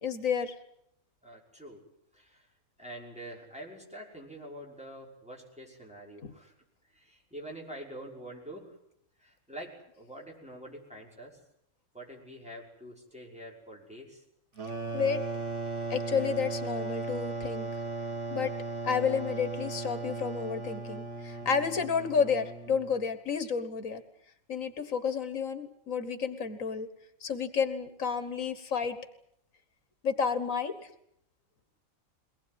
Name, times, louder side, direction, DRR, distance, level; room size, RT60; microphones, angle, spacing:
voice 1, 0.0-0.6 6.2-6.3 14.9-15.2 15.9-17.7 18.3-18.5 18.8-24.0 24.5-26.9 27.2-29.0 30.0-30.7, left 6 dB, 80° left, 11 dB, 1.8 m, -30 dB
voice 2, 1.2-1.8 2.1-2.5 2.8-6.5 6.9-8.7 9.2-11.4 11.9-14.2, right 1 dB, 5° right, -2 dB, 5.9 m, -46 dB
sound 1, 14.6-23.0, right 3 dB, 65° right, 2.2 m, -37 dB
22.5 x 19.5 x 9.5 m, 0.75 s
omnidirectional pair, 1.4 m